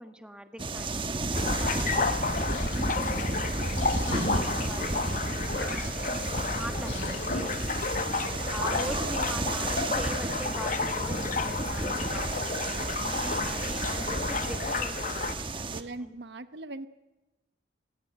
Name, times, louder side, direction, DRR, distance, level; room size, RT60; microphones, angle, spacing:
voice 1, 0.0-2.3 3.0-3.4 4.0-5.8 6.0-12.5 13.0-15.6 16.0-16.1, equal, 5° right, 8 dB, 1.4 m, -42 dB
sound 1, 0.6-15.8, right 2 dB, 30° right, 1.1 m, -32 dB
sound 2, 1.3-15.4, left 4 dB, 45° left, 1.1 m, -32 dB
sound 3, 2.1-9.2, left 1 dB, 65° left, 5.3 m, -39 dB
voice 2, 15.7-16.9, right 2 dB, 60° right, 12 dB, 0.9 m, -40 dB
29.5 x 16.5 x 9.1 m, 1.1 s
head